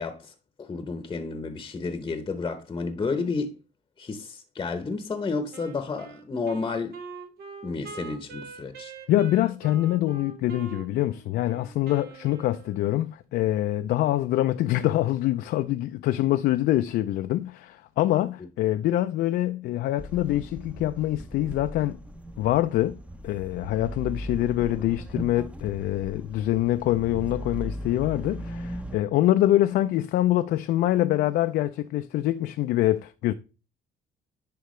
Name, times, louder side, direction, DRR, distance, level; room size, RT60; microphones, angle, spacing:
voice 1, 0.0-3.6 4.0-7.0 7.6-8.9, left 4 dB, 25° left, 0.8 m, -31 dB
Wind instrument woodwind instrument, 5.5-13.0, right 5 dB, 70° right, 1.2 m, -44 dB
voice 2, 9.1-22.0 22.4-23.0 23.2-33.3, left 14 dB, 70° left, 0.4 m, -25 dB
sound 1, 20.0-29.0, equal, 5° right, 0.7 m, -38 dB
10.5 x 4.7 x 3.1 m
cardioid pair, 110°, 17 cm